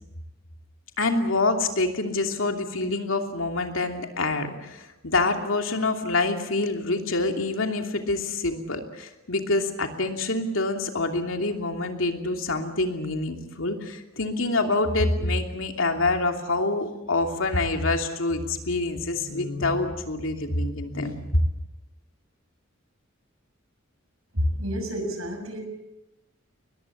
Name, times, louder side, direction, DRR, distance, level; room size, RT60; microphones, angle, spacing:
voice 1, 1.0-21.4, left 2 dB, 70° left, 4 dB, 2.9 m, -26 dB
voice 2, 24.3-25.6, equal, 90° right, 4 dB, 7.3 m, -28 dB
22.5 x 20.5 x 8.6 m, 0.95 s
head